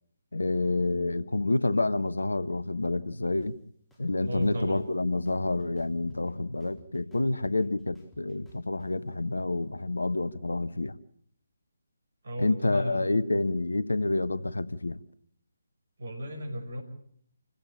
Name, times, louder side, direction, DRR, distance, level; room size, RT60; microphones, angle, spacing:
voice 1, 0.3-3.5 4.0-11.0 12.4-15.0, left 2 dB, 70° left, 1.2 m, -28 dB
sound 1, 3.4-3.5 3.9-4.9 5.3-6.3 6.6-8.9, left 1 dB, 5° left, 4.0 m, -57 dB
voice 2, 4.3-4.8 12.2-13.1 16.0-16.8, equal, 55° right, 5.9 m, -35 dB
28.0 x 16.0 x 8.9 m
figure-of-eight pair, 145°, 0 cm